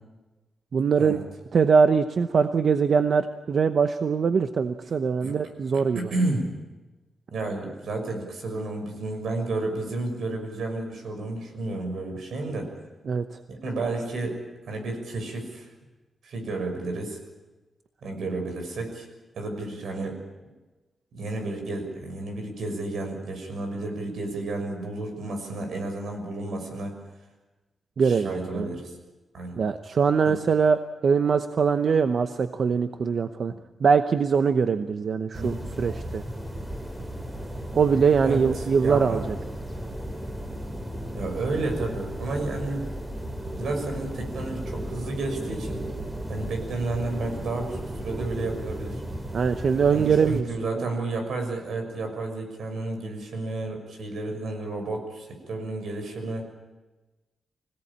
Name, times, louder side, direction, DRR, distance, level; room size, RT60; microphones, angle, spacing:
voice 1, 0.7-1.2 1.5-6.1 13.1-13.4 28.0-28.7 29.6-33.5 33.8-36.2 37.7-39.2 49.3-50.4 50.8-50.9, right 6 dB, 55° right, 9 dB, 0.8 m, -22 dB
voice 2, 5.9-6.5 7.3-12.7 13.5-14.4 14.7-15.7 16.2-17.2 18.0-19.1 19.3-20.2 21.1-26.9 28.0-28.9 29.3-29.6 30.2-30.4 35.3-35.6 38.2-38.4 38.8-39.3 41.1-42.9 43.5-45.8 46.3-49.0 49.9-56.4, right 2 dB, 80° right, 4 dB, 6.5 m, -31 dB
sound 1, 35.3-50.4, right 1 dB, 15° right, 3.2 m, -35 dB
25.0 x 17.5 x 8.7 m, 1.2 s
wide cardioid pair, 145°, 0 cm